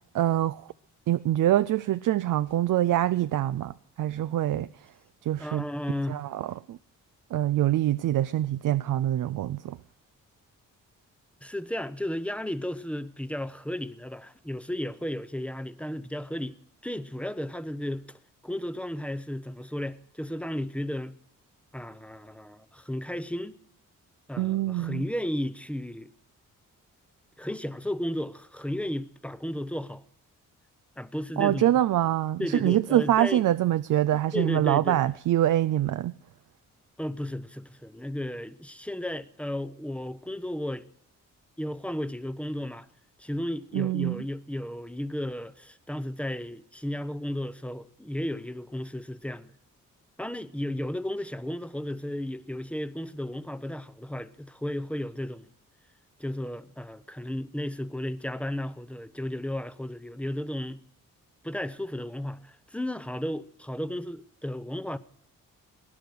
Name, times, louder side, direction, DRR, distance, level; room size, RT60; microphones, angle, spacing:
voice 1, 0.1-0.7 1.1-4.9 5.2-5.6 6.1-6.8 7.3-9.8 24.4-25.1 31.4-36.2 43.7-44.2, right 13 dB, 65° right, 0.5 m, -25 dB
voice 2, 5.4-6.2 11.4-16.6 16.8-21.1 21.7-23.6 24.3-26.1 27.4-30.0 31.0-31.7 32.4-33.4 34.3-35.0 37.0-40.9 41.6-42.9 43.2-49.5 50.2-55.5 56.2-60.8 61.4-65.0, left 1 dB, 5° left, 0.8 m, -34 dB
18.5 x 10.5 x 6.4 m
cardioid pair, 60°, 34 cm